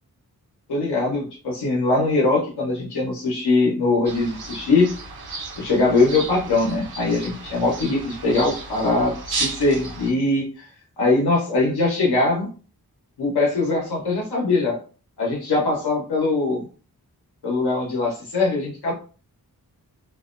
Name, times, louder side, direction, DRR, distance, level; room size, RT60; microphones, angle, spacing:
voice 1, 0.7-4.9 5.6-10.7 11.0-12.5 13.2-14.8 15.2-16.7 17.4-18.9, left 3 dB, 85° left, -2 dB, 0.9 m, -21 dB
sound 1, 4.1-10.1, right 3 dB, 70° right, 0.8 m, -33 dB
2.4 x 2.1 x 2.4 m, 0.37 s
cardioid pair, 40°, 38 cm